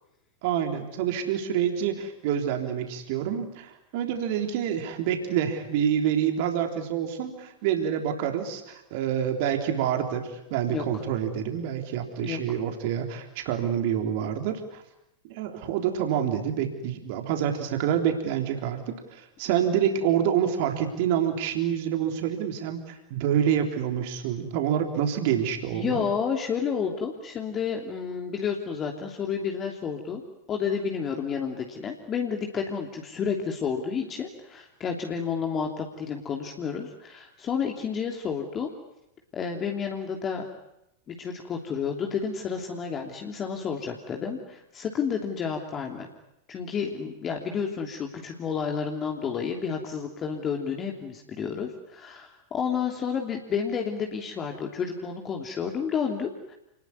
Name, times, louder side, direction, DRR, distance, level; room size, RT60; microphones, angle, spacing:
voice 1, 0.4-14.8 15.3-26.1, right 9 dB, 50° right, 4 dB, 3.6 m, -27 dB
voice 2, 25.7-30.2 30.5-38.7 39.3-40.5 41.1-46.1 46.5-56.5, left 6 dB, 25° left, 2 dB, 3.1 m, -30 dB
30.0 x 20.5 x 9.7 m, 0.87 s
figure-of-eight pair, 90°, 0 cm